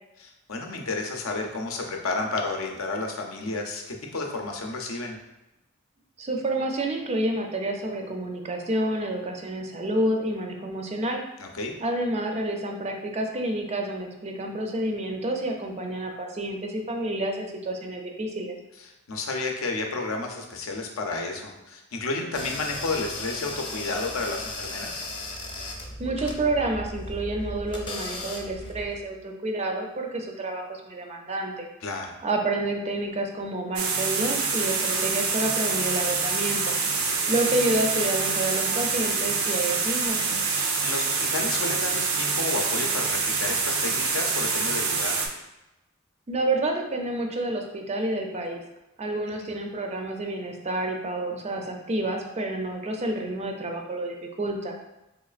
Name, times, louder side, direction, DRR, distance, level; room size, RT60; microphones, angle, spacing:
voice 1, 0.2-5.2 11.4-11.7 19.1-25.0 31.8-32.2 40.4-45.1, left 3 dB, 75° left, 2 dB, 0.6 m, -31 dB
voice 2, 6.2-11.2 11.8-18.5 26.0-31.7 32.2-36.7 37.3-40.2 46.3-48.6 49.0-54.7, right 1 dB, 30° right, 3 dB, 0.4 m, -29 dB
sound 1, 22.3-29.0, left 2 dB, 25° left, 0.5 m, -36 dB
sound 2, 33.8-45.3, right 4 dB, 80° right, 0.5 m, -26 dB
4.1 x 3.1 x 2.4 m, 0.97 s
head